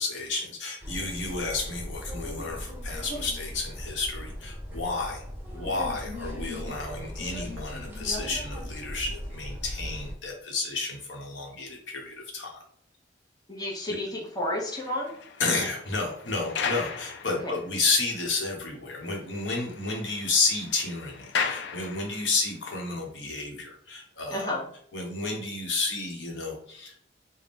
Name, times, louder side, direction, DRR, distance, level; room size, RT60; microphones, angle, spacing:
voice 1, 0.0-5.2 5.5-12.6 13.9-14.0 15.4-24.6 24.9-26.9, left 3 dB, 85° left, 0 dB, 1.0 m, -31 dB
sound 1, 0.8-10.1, equal, 10° right, 1.2 m, -38 dB
voice 2, 13.5-15.1 17.3-17.5 24.3-24.6, left 1 dB, 20° left, -2 dB, 0.8 m, -31 dB
sound 2, 14.4-17.9 18.4-18.5 18.9-19.0 19.3-22.5, left 5 dB, 65° left, 0.4 m, -36 dB
3.4 x 2.1 x 4.1 m, 0.63 s
head